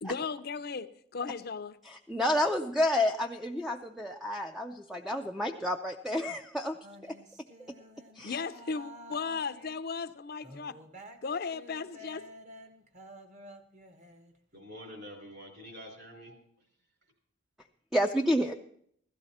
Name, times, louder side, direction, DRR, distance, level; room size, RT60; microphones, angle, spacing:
voice 1, 0.0-1.8 8.2-10.8 11.2-12.3, left 5 dB, 50° left, 13 dB, 0.6 m, -36 dB
voice 2, 1.8-6.8 7.0-7.2 8.1-8.4 17.9-18.5, left 1 dB, ahead, 4 dB, 0.4 m, -30 dB
sound 1, 6.8-9.8 10.4-14.3, equal, 35° right, 1.0 m, -51 dB
voice 3, 14.5-16.7 17.0-17.1, equal, 50° right, 3 dB, 3.7 m, -47 dB
16.0 x 13.0 x 4.2 m, 0.68 s
head